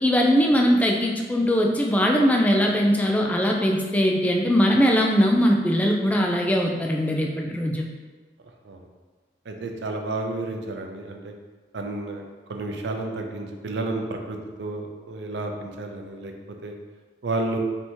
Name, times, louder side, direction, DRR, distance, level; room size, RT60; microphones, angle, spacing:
voice 1, 0.0-7.9, equal, 10° left, 0 dB, 0.3 m, -21 dB
voice 2, 9.5-11.3 11.7-12.2 12.5-16.3 16.6-16.7 17.2-17.6, right 2 dB, 70° right, 3 dB, 0.5 m, -31 dB
3.4 x 2.8 x 4.3 m, 1.3 s
head